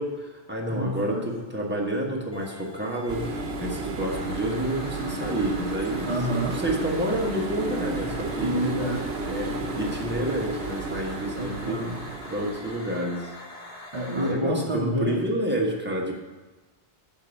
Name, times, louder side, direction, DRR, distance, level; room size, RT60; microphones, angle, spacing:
voice 1, 0.0-6.1 6.5-8.6 9.2-11.8 12.3-13.3 14.1-16.1, right 1 dB, 10° right, -2 dB, 1.3 m, -29 dB
voice 2, 0.7-1.3 6.1-6.6 8.4-9.1 11.4-12.0 13.9-15.2, right 1 dB, 30° right, -4 dB, 1.0 m, -28 dB
sound 1, 2.3-14.3, left 1 dB, 35° left, 1.1 m, -43 dB
sound 2, 3.1-12.8, right 3 dB, 85° right, 1.0 m, -33 dB
10.5 x 3.8 x 7.0 m, 1.2 s
omnidirectional pair, 1.1 m